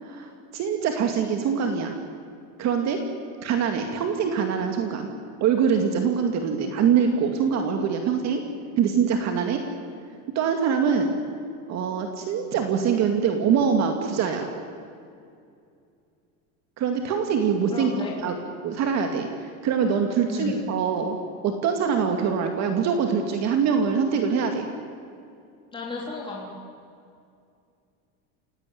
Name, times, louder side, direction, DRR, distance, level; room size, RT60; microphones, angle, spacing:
voice 1, 0.0-2.0 2.6-3.0 3.4-5.1 5.4-8.4 8.8-9.6 10.3-11.1 11.7-14.5 16.8-17.9 18.2-18.3 18.6-21.2 21.4-24.7, right 6 dB, 40° right, 4 dB, 2.4 m, -24 dB
voice 2, 17.7-18.1 20.3-20.6 25.7-26.5, left 3 dB, 10° left, -3 dB, 3.4 m, -33 dB
29.0 x 17.0 x 9.4 m, 2.4 s
cardioid pair, 160°, 40 cm